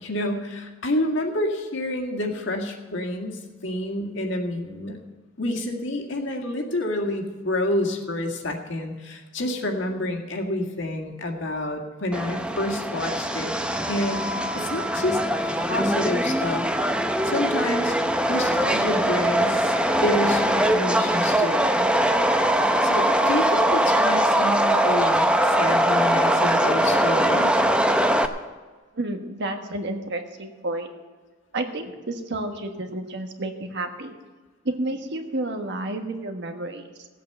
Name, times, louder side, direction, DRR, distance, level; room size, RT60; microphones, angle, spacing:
voice 1, 0.0-5.0 5.4-13.5 13.9-16.7 17.2-18.0 18.3-21.9 22.8-27.6, left 1 dB, 65° left, 2 dB, 1.9 m, -28 dB
Subway metro underground, 12.1-28.3, right 1 dB, 5° right, 0.6 m, -22 dB
voice 2, 29.0-30.9 31.5-34.2 34.6-37.1, right 2 dB, 60° right, 5 dB, 1.4 m, -30 dB
16.5 x 8.2 x 6.7 m, 1.3 s
head